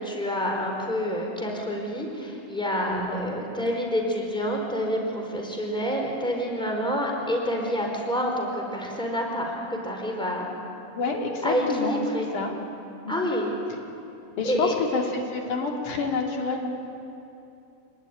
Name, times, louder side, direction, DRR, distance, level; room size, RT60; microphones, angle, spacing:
voice 1, 0.0-10.5 11.4-12.3 13.1-13.5 14.4-14.7, equal, ahead, 0 dB, 4.3 m, -28 dB
voice 2, 10.9-12.5 13.0-13.1 14.4-16.7, left 4 dB, 80° left, 0 dB, 4.2 m, -28 dB
27.0 x 20.0 x 10.0 m, 2.8 s
omnidirectional pair, 3.5 m